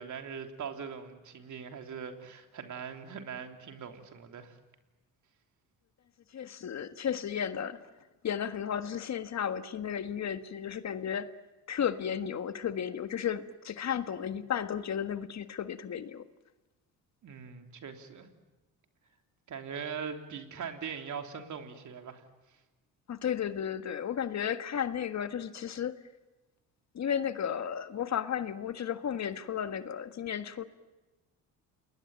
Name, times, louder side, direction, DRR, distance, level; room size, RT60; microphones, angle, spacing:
voice 1, 0.0-4.6 17.2-18.3 19.5-22.2, right 6 dB, 55° right, 6 dB, 3.3 m, -41 dB
voice 2, 6.3-7.8 8.2-11.3 11.7-16.2 23.1-26.0 26.9-30.6, left 8 dB, 50° left, 11 dB, 1.5 m, -33 dB
29.0 x 20.5 x 9.0 m, 1.1 s
cardioid pair, 90°, 36 cm